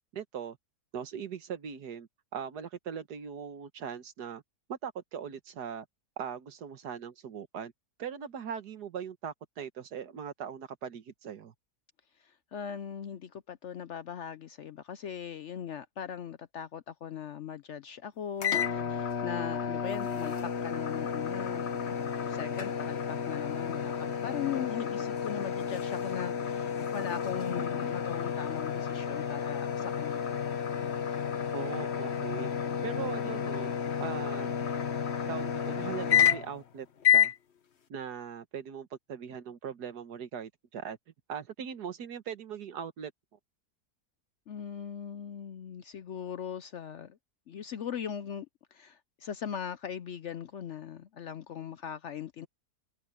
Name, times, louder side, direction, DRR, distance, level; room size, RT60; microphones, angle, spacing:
voice 1, 0.1-0.6 0.9-4.4 4.7-5.9 6.2-7.7 8.0-11.5 31.5-32.5 32.8-33.7 34.0-34.5 35.3-37.3 37.9-41.0 41.3-43.1, right 7 dB, 80° right, 1.8 m, -40 dB
voice 2, 12.2-21.7 22.2-30.3 44.5-47.2 47.5-52.5, left 8 dB, 60° left, 0.8 m, -39 dB
sound 1, 18.4-36.6 37.0-37.4, left 8 dB, 45° left, 1.2 m, -31 dB
omnidirectional pair, 1.7 m